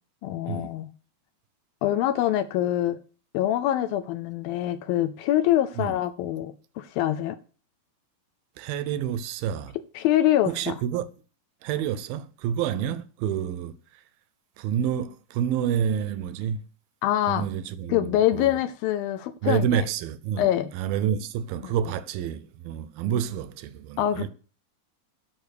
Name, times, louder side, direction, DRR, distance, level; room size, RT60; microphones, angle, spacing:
voice 1, 0.2-0.9 1.8-3.0 3.3-7.4 10.0-10.5 17.0-17.5 17.9-19.7 20.4-20.7 24.0-24.3, left 12 dB, 80° left, 2.2 m, -24 dB
voice 2, 8.6-9.8 10.5-11.1 11.6-14.0 14.6-16.6 17.3-18.6 19.4-24.3, right 9 dB, 80° right, 2.2 m, -29 dB
10.5 x 5.6 x 6.6 m
omnidirectional pair, 4.5 m